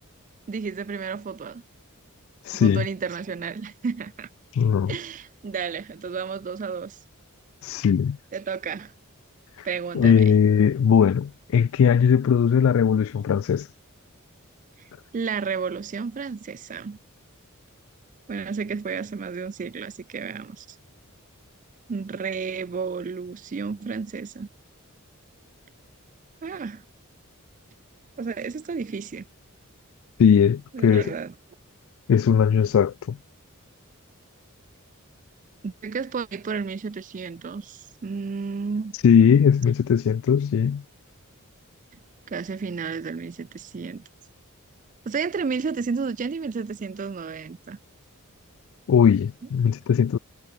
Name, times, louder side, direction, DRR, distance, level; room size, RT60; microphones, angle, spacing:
voice 1, 0.5-1.6 2.5-4.3 4.9-7.0 8.3-8.9 9.6-10.3 15.1-17.0 18.3-20.7 21.9-24.5 26.4-26.8 28.2-29.3 30.7-31.3 35.6-39.0 42.3-44.0 45.1-47.8, right 5 dB, 35° right, 0.4 m, -32 dB
voice 2, 2.4-2.9 4.5-5.0 7.6-8.2 9.6-9.7 9.9-13.7 30.2-31.1 32.1-33.2 38.9-40.8 48.9-50.2, left 7 dB, 65° left, 0.3 m, -19 dB
head